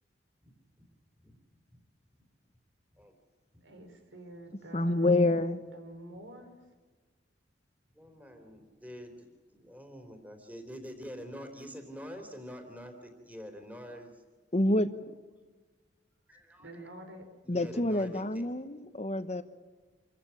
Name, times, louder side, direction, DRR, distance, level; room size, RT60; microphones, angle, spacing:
voice 1, 0.4-0.9 1.2-1.4 1.7-1.8 2.1-2.2 2.9-3.2 7.9-14.2 16.3-16.9 17.4-18.5, equal, 10° right, 5 dB, 3.7 m, -46 dB
voice 2, 3.6-5.4 5.7-6.7 16.6-17.3, right 1 dB, 90° right, 5 dB, 5.3 m, -48 dB
voice 3, 4.7-5.6 14.5-14.9 17.5-19.4, left 2 dB, 35° left, 11 dB, 1.0 m, -27 dB
27.5 x 14.5 x 9.1 m, 1.3 s
head